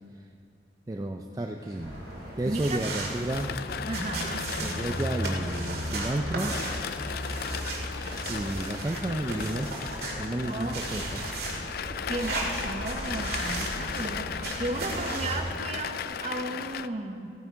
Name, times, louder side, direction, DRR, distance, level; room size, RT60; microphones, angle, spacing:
voice 1, 0.9-2.0 2.4-3.5 4.6-6.5 8.3-9.7 10.2-11.3, right 1 dB, 20° right, 3 dB, 0.4 m, -31 dB
sound 1, 1.6-16.0, left 1 dB, 30° left, 2.2 m, -48 dB
sound 2, 1.8-15.5, right 1 dB, 60° right, 2.2 m, -35 dB
voice 2, 2.5-2.9 3.9-4.5 10.4-10.8 12.1-17.3, right 2 dB, 40° right, 5 dB, 0.8 m, -34 dB
sound 3, 3.3-16.9, left 8 dB, 55° left, 0.3 m, -37 dB
14.5 x 9.6 x 4.6 m, 2.4 s
head